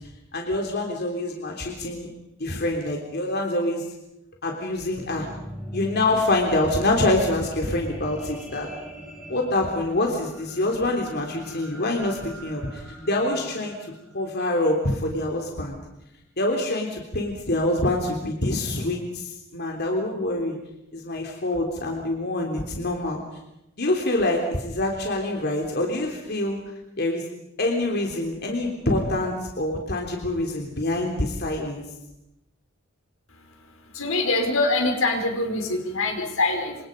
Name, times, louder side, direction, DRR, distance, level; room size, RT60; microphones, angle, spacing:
voice 1, 0.3-2.1 2.4-3.8 4.4-5.3 5.7-8.7 9.3-15.8 16.4-20.6 20.9-23.2 23.8-26.6 27.0-27.2 27.6-31.8, left 1 dB, 50° left, 1 dB, 3.5 m, -26 dB
sound 1, 4.8-15.1 15.7-15.8, equal, 5° right, 6.8 m, -42 dB
voice 2, 33.9-36.8, left 2 dB, 80° left, 3 dB, 5.3 m, -24 dB
28.5 x 26.5 x 5.4 m, 0.87 s
head